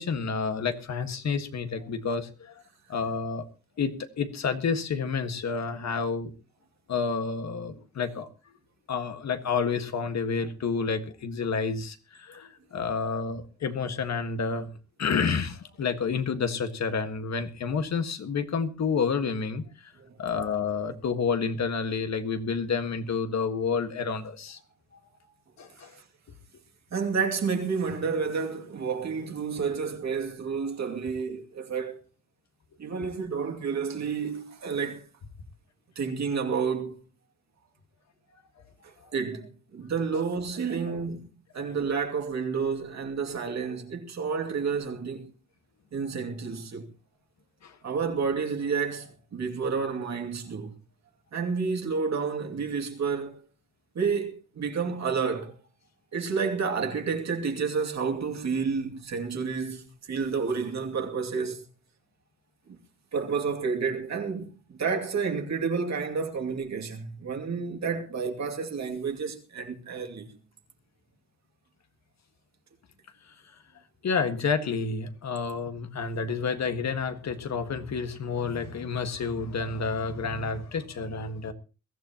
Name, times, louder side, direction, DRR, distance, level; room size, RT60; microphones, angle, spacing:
voice 1, 0.0-2.5 2.9-3.4 3.8-6.3 6.9-8.3 8.9-14.7 15.0-19.6 20.2-24.6 25.6-25.9 40.9-41.0 41.6-41.7 47.6-47.7 74.0-81.5, left 5 dB, 60° left, 1.7 m, -29 dB
voice 2, 26.9-32.0 32.8-35.1 36.0-37.0 38.8-41.3 41.5-45.3 45.9-46.9 47.8-50.7 51.3-53.4 53.9-55.6 56.1-61.6 62.7-62.8 63.1-70.4, right 5 dB, 60° right, 2.5 m, -30 dB
22.0 x 14.5 x 3.0 m
wide cardioid pair, 130°, 30 cm